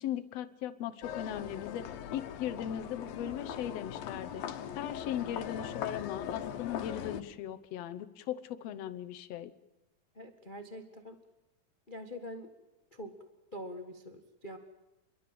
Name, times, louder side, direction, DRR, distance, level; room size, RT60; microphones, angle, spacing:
voice 1, 0.0-1.8 2.1-4.4 4.7-9.5, left 11 dB, 65° left, 12 dB, 1.7 m, -38 dB
sound 1, 1.0-7.2, left 9 dB, 90° left, 2.9 m, -40 dB
voice 2, 10.1-11.2 11.9-12.5 12.9-13.1 13.5-14.6, equal, 40° left, 6 dB, 0.6 m, -44 dB
27.5 x 23.0 x 7.8 m, 0.98 s
omnidirectional pair, 3.9 m